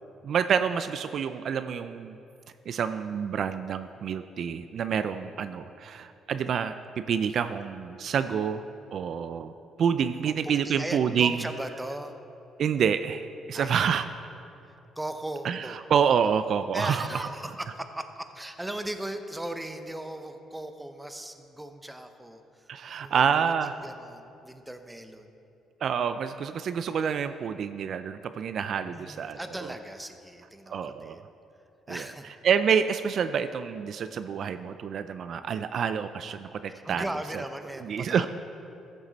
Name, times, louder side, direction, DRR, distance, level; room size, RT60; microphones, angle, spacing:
voice 1, 0.2-2.2 2.7-8.6 8.9-9.5 9.8-11.4 12.6-14.0 15.4-17.3 22.7-23.8 25.8-29.7 30.7-31.2 31.9-32.1 32.4-37.1 37.3-37.4 37.8-38.3, right 7 dB, 60° right, 11 dB, 0.3 m, -28 dB
voice 2, 10.6-12.1 13.5-14.0 15.0-15.8 16.7-22.7 23.0-23.5 23.8-25.4 28.9-31.2 31.9-32.3 36.7-38.3, right 1 dB, 10° right, 8 dB, 0.7 m, -38 dB
14.0 x 7.3 x 4.1 m, 2.7 s
cardioid pair, 95°, 0 cm